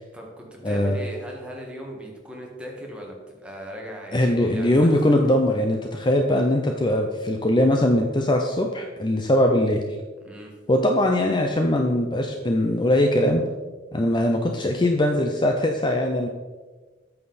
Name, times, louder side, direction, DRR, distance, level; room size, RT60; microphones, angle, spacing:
voice 1, 0.1-4.9 10.2-10.5, equal, 5° right, -1 dB, 1.7 m, -38 dB
voice 2, 0.6-1.0 4.1-9.8 10.7-13.4 13.9-16.3, left 1 dB, 25° left, 3 dB, 0.6 m, -21 dB
8.8 x 6.8 x 4.2 m, 1.3 s
head